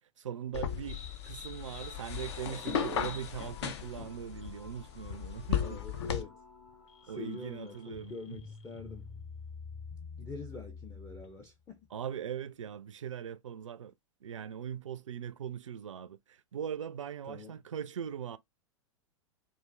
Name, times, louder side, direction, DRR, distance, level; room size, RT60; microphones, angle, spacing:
voice 1, 0.2-5.8 7.1-8.4 11.9-13.9 14.2-18.4, right 9 dB, 70° right, 0.4 m, -40 dB
sound 1, 0.5-6.2, left 8 dB, 55° left, 0.7 m, -36 dB
sound 2, 0.9-11.5, left 5 dB, 35° left, 1.1 m, -49 dB
sound 3, 1.8-8.0, left 2 dB, 80° left, 1.6 m, -59 dB
voice 2, 5.6-6.4 7.0-9.1 10.2-11.8 17.3-17.6, left 4 dB, 15° left, 0.6 m, -45 dB
4.8 x 2.6 x 2.5 m
figure-of-eight pair, 95°, 17 cm